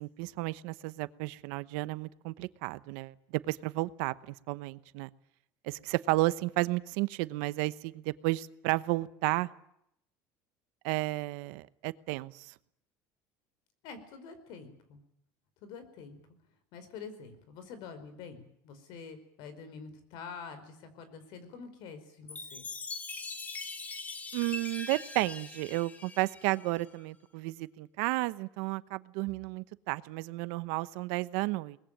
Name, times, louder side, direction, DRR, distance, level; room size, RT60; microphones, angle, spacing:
voice 1, 0.0-3.1 3.5-4.1 4.5-5.1 5.6-9.5 10.8-12.5 24.3-31.8, right 20 dB, 80° right, 15 dB, 1.0 m, -32 dB
voice 2, 13.8-15.0 15.6-16.2 16.7-22.6, left 5 dB, 65° left, 11 dB, 4.9 m, -46 dB
Chime, 22.3-26.9, left 3 dB, 20° left, 1.8 m, -42 dB
22.5 x 20.5 x 9.0 m, 0.75 s
cardioid pair, 145°, 8 cm